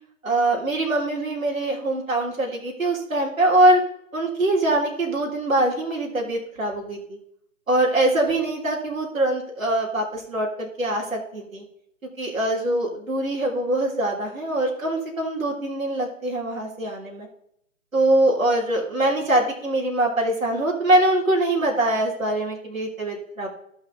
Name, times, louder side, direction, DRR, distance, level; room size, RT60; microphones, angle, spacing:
voice 1, 0.2-3.8 4.1-7.2 7.7-11.6 12.2-17.3 17.9-23.5, right 1 dB, 75° right, -2 dB, 3.4 m, -23 dB
15.0 x 5.8 x 4.0 m, 0.71 s
figure-of-eight pair, 135°, 41 cm